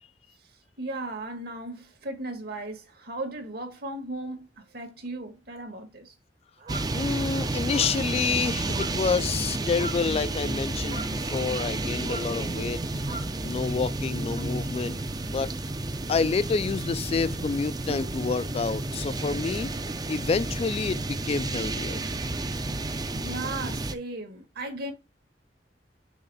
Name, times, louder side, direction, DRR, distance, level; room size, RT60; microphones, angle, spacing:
voice 1, 0.8-6.1 23.1-24.9, right 2 dB, 60° right, 1.9 m, -36 dB
sound 1, 6.6-7.0 7.6-8.1 8.6-9.2 9.5-10.1 10.8-11.7 12.0-12.4 13.0-13.4 14.3-14.4, right 3 dB, 45° right, 1.3 m, -41 dB
sound 2, 6.7-24.0, right 2 dB, 20° right, 0.5 m, -31 dB
voice 2, 6.9-12.8 13.4-15.5 16.1-19.7 20.1-22.0, left 5 dB, 35° left, 0.3 m, -28 dB
6.4 x 3.2 x 5.6 m
head